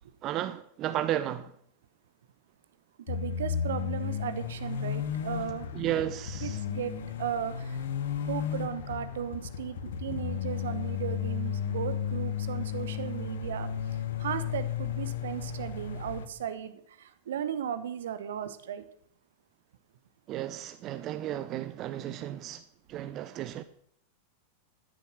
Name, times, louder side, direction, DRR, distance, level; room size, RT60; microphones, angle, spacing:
voice 1, 0.2-1.5 5.7-6.6 20.3-22.6 22.9-23.6, right 12 dB, 35° right, 0.6 m, -33 dB
sound 1, 3.1-16.3, left 8 dB, 60° left, 1.0 m, -34 dB
voice 2, 3.1-5.7 6.4-7.8 8.3-13.7 14.2-18.8, right 9 dB, 60° right, 1.0 m, -36 dB
13.5 x 7.0 x 6.2 m
figure-of-eight pair, 90°, 0 cm